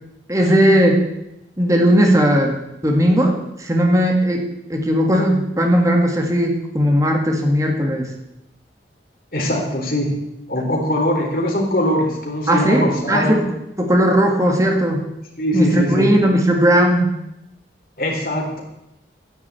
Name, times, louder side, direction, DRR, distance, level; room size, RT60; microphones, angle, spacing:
voice 1, 0.3-1.0 1.6-4.4 4.7-8.1 12.5-13.4 13.8-15.0 15.5-17.1, equal, 20° right, 1 dB, 2.0 m, -17 dB
voice 2, 9.3-10.1 10.5-13.4 15.4-16.1 18.0-18.6, equal, 50° left, 0 dB, 3.9 m, -21 dB
11.5 x 10.5 x 8.4 m, 0.86 s
head